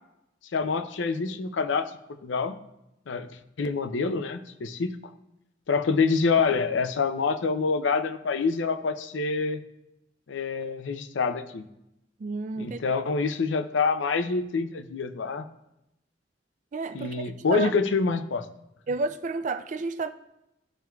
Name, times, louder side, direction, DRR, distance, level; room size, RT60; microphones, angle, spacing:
voice 1, 0.5-2.6 3.1-3.3 3.6-5.0 5.7-9.6 10.3-11.6 12.6-15.5 16.9-18.5, left 4 dB, 90° left, 0.5 m, -26 dB
voice 2, 12.2-12.8 16.7-17.7 18.9-20.1, right 4 dB, 40° right, 0.3 m, -31 dB
12.5 x 4.5 x 2.3 m
head